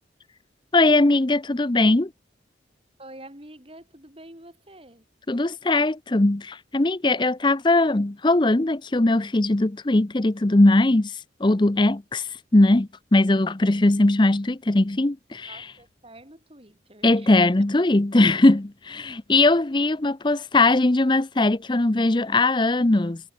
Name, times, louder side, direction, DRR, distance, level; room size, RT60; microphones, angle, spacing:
voice 1, 0.7-2.1 5.3-11.1 11.4-15.6 17.0-23.2, left 2 dB, 25° left, 0.6 m, -20 dB
voice 2, 3.0-5.1 15.5-17.6, right 1 dB, 30° right, 6.0 m, -46 dB
head